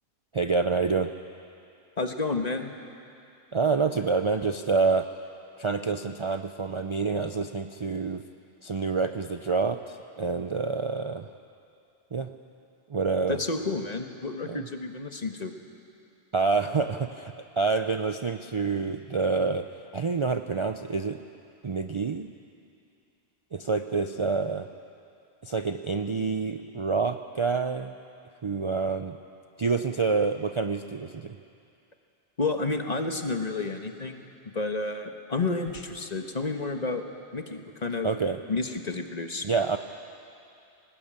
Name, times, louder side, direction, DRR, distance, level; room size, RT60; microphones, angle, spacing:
voice 1, 0.3-1.1 3.5-5.1 5.6-8.2 8.6-11.3 12.1-12.3 12.9-13.4 14.4-14.7 16.3-19.7 19.9-21.2 21.6-22.3 23.5-24.7 25.4-27.9 28.4-29.2 29.6-31.4 38.0-38.4 39.4-39.8, right 4 dB, 40° right, 8 dB, 0.5 m, -27 dB
voice 2, 2.0-2.7 13.3-15.5 32.4-34.2 34.5-37.0 37.3-38.1 38.5-39.5, left 3 dB, 40° left, 5 dB, 1.4 m, -30 dB
20.0 x 18.5 x 8.8 m, 2.6 s
omnidirectional pair, 1.1 m